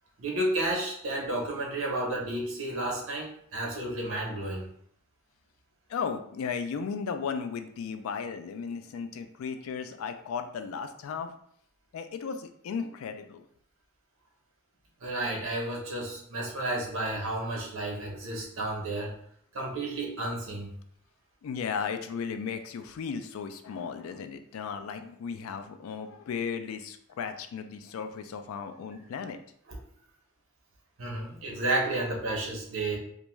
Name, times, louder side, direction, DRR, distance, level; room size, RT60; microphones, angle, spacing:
voice 1, 0.2-4.7 15.0-19.1 19.5-20.7 31.0-33.0, right 2 dB, 75° right, -1 dB, 0.8 m, -31 dB
voice 2, 5.9-11.3 11.9-13.4 21.4-29.4, left 6 dB, 80° left, 8 dB, 0.3 m, -35 dB
2.5 x 2.2 x 3.0 m, 0.66 s
head